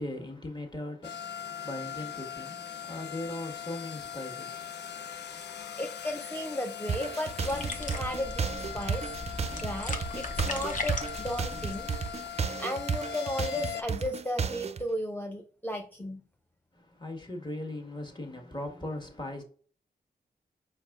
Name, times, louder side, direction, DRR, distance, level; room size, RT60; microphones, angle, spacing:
voice 1, 0.0-5.8 16.7-19.4, left 1 dB, 25° left, 1.5 m, -39 dB
sound 1, 1.0-13.8, left 9 dB, 80° left, 0.4 m, -40 dB
voice 2, 5.8-8.5 8.7-9.1 9.6-11.9 12.6-16.2, left 1 dB, 10° left, 0.5 m, -35 dB
sound 2, 6.9-14.8, right 6 dB, 40° right, 0.4 m, -33 dB
sound 3, 7.4-12.4, left 2 dB, 50° left, 0.9 m, -38 dB
4.6 x 4.5 x 2.4 m
cardioid pair, 60°, 17 cm